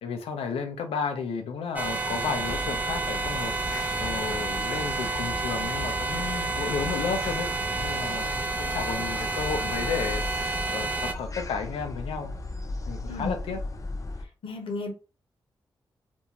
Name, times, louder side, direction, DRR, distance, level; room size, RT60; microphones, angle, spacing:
voice 1, 0.0-12.3 12.9-13.6, left 5 dB, 90° left, 0.5 m, -33 dB
sound 1, 1.8-11.1, right 3 dB, 20° right, 0.5 m, -30 dB
sound 2, 2.5-14.3, left 2 dB, 35° left, 0.5 m, -37 dB
voice 2, 14.4-14.9, left 2 dB, 70° left, 0.9 m, -33 dB
2.6 x 2.2 x 2.8 m
supercardioid pair, 45°, 9 cm